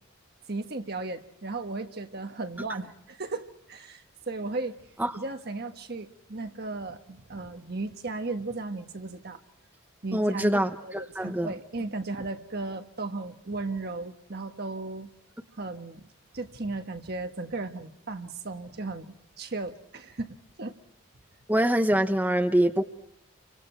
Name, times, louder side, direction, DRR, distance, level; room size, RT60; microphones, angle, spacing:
voice 1, 0.5-4.8 5.1-9.4 10.0-15.1 15.6-16.0 16.3-20.7, right 3 dB, 55° right, 6 dB, 1.4 m, -35 dB
voice 2, 10.1-11.5 21.5-22.8, right 1 dB, 10° right, 6 dB, 0.9 m, -24 dB
30.0 x 25.0 x 4.5 m, 0.76 s
head